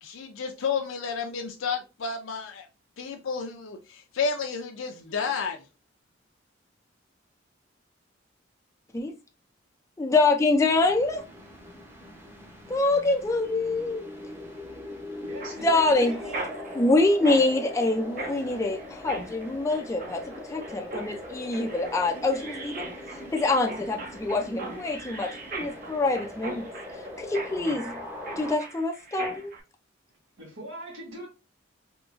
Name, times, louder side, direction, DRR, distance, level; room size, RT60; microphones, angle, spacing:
voice 1, 0.0-2.7 3.0-5.6, left 5 dB, 85° left, 0.5 m, -31 dB
voice 2, 10.0-11.2 12.7-14.0 15.6-16.2 16.8-20.2 20.5-26.7 27.2-27.8 28.4-29.5, left 2 dB, 15° left, 0.3 m, -25 dB
sound 1, 10.7-28.5, left 1 dB, 10° right, 0.7 m, -41 dB
voice 3, 15.2-16.9 27.5-28.0 30.4-31.3, right 1 dB, 85° right, 2.0 m, -41 dB
Mechanisms, 15.4-29.6, right 2 dB, 45° right, 0.8 m, -40 dB
3.7 x 2.8 x 2.4 m
head